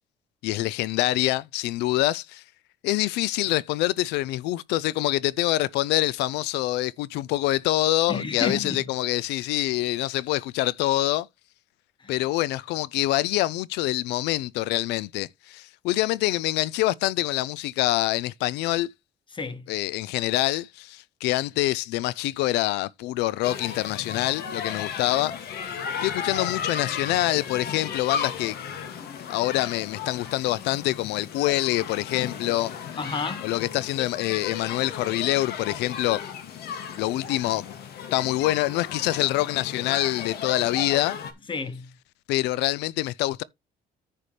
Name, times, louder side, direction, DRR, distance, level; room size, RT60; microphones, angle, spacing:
voice 1, 0.4-2.4 2.8-11.3 12.1-18.9 19.7-25.4 26.0-28.6 29.3-32.7 33.4-36.2 37.0-37.7 38.1-41.2 42.3-43.4, left 17 dB, 85° left, 0.5 m, -25 dB
voice 2, 8.1-8.8 12.0-12.1 19.3-19.7 33.0-33.5 41.5-41.9, left 4 dB, 30° left, 1.3 m, -31 dB
sound 1, 23.4-41.3, left 7 dB, 70° left, 2.1 m, -35 dB
9.9 x 6.8 x 3.2 m
cardioid pair, 110°, 17 cm